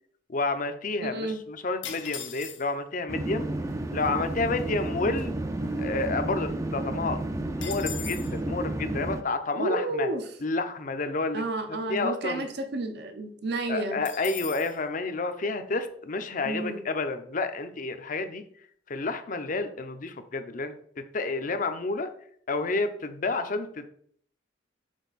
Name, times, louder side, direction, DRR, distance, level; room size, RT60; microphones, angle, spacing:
voice 1, 0.3-3.5 3.9-5.3 5.8-7.2 7.6-10.1 10.4-11.4 11.7-12.4 13.7-18.4 18.9-22.1 22.5-23.9, left 3 dB, 45° left, 9 dB, 0.6 m, -30 dB
voice 2, 1.0-1.4 9.6-10.2 11.3-14.0 16.4-16.8, right 2 dB, 60° right, 6 dB, 0.7 m, -31 dB
sound 1, 1.8-2.9 3.7-3.8 4.0-4.3 4.8-6.2 6.6-6.7 7.0-8.4 14.0-14.8, left 8 dB, 80° left, 0.9 m, -40 dB
sound 2, 3.1-9.2, right 1 dB, 15° right, 0.4 m, -31 dB
6.4 x 4.3 x 4.1 m, 0.63 s
head